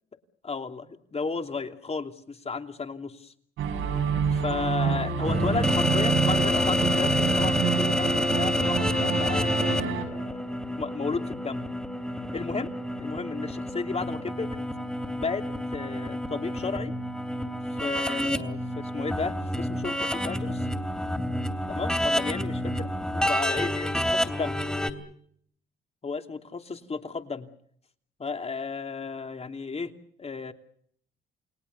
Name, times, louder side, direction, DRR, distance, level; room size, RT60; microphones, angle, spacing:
voice 1, 0.5-3.3 4.3-11.6 12.3-14.6 15.1-16.9 17.8-20.7 21.7-22.9 23.1-24.6 26.0-27.5 28.2-29.9 30.2-30.5, left 4 dB, 30° left, 7 dB, 2.9 m, -34 dB
sound 1, 3.6-10.1, right 6 dB, 90° right, 6.0 m, -28 dB
sound 2, 5.2-24.9, left 1 dB, 5° left, 3.0 m, -28 dB
29.5 x 20.5 x 7.0 m, 0.64 s
cardioid pair, 90°, 20 cm